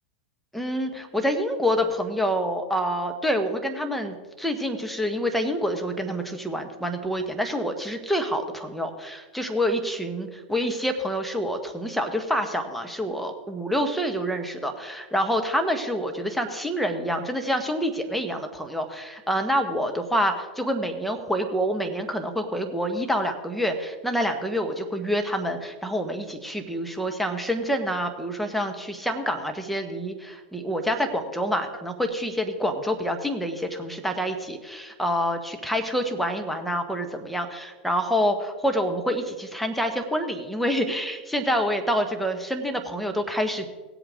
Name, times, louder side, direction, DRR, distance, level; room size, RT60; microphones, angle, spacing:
voice 1, 0.5-43.7, equal, ahead, 5 dB, 1.4 m, -27 dB
17.5 x 8.1 x 3.8 m, 1.3 s
hypercardioid pair, 105°, 5 cm